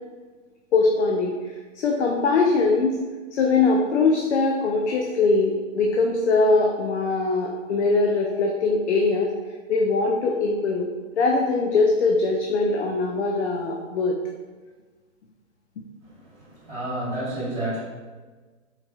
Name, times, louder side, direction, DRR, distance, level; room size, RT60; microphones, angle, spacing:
voice 1, 0.7-1.3 1.8-3.0 3.3-9.3 9.7-10.9 11.1-14.2, left 3 dB, 60° left, 1 dB, 0.5 m, -21 dB
voice 2, 16.0-17.8, right 1 dB, 5° right, -15 dB, 1.1 m, -31 dB
4.5 x 2.8 x 2.3 m, 1.4 s
hypercardioid pair, 175°, 38 cm